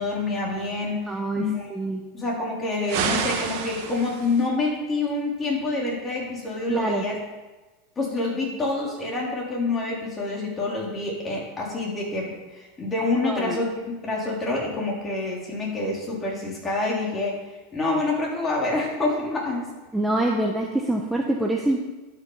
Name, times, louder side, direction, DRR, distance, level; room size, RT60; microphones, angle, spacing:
voice 1, 0.0-1.7 2.1-7.2 8.0-13.7 14.0-17.4 17.7-19.7, left 3 dB, 20° left, -3 dB, 3.5 m, -27 dB
voice 2, 1.1-1.4 1.7-2.0 6.7-7.0 13.2-13.6 19.9-21.8, right 1 dB, 5° right, 0 dB, 1.0 m, -25 dB
sound 1, 2.9-4.5, right 7 dB, 60° right, 1.5 m, -29 dB
11.5 x 6.4 x 5.6 m, 1.2 s
supercardioid pair, 120°, 0 cm